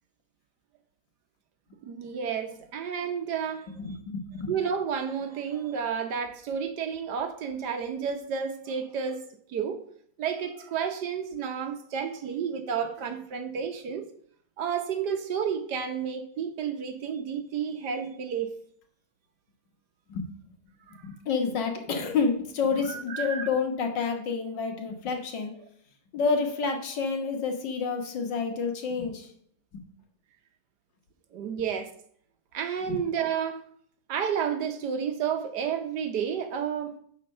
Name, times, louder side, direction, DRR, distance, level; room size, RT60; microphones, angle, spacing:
voice 1, 1.8-4.0 4.5-9.2 9.5-9.8 10.2-14.0 14.6-18.5 21.0-21.1 22.9-23.5 31.3-31.9 32.5-33.6 34.1-37.0, right 7 dB, 65° right, 1.3 m, -31 dB
voice 2, 3.8-4.5 20.1-20.3 21.0-25.5 26.1-29.3 29.7-29.9 32.9-33.0, left 5 dB, 65° left, 2.0 m, -29 dB
9.8 x 4.3 x 6.5 m
omnidirectional pair, 2.1 m